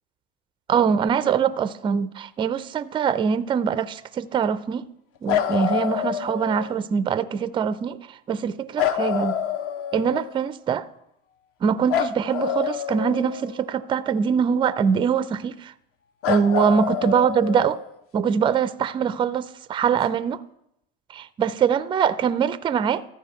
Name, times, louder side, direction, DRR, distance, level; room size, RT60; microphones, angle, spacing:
voice 1, 0.7-4.9 5.2-9.4 9.9-10.8 11.6-15.7 16.3-17.8 18.1-20.4 21.1-23.1, right 7 dB, 15° right, 0.4 m, -23 dB
sound 1, 5.3-6.7 8.8-10.4 11.9-13.8 16.2-18.0 20.0-20.1, left 9 dB, 45° left, 0.7 m, -27 dB
14.0 x 4.9 x 5.6 m
hypercardioid pair, 90°, 30 cm